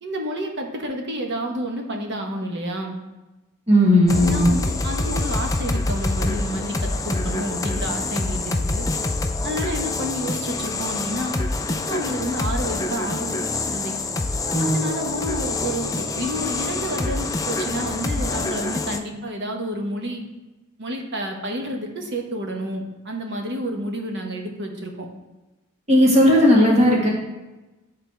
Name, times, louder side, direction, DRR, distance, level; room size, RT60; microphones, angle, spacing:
voice 1, 0.0-3.0 4.2-8.9 9.4-11.4 11.7-13.4 13.7-13.9 14.6-20.2 20.8-25.1, right 1 dB, 50° right, 2 dB, 1.0 m, -30 dB
voice 2, 3.7-4.5 14.5-14.7 25.9-27.1, left 1 dB, 30° right, -3 dB, 1.5 m, -16 dB
sound 1, 4.1-19.0, left 2 dB, 15° left, 0.3 m, -26 dB
11.0 x 3.9 x 3.3 m, 1.1 s
head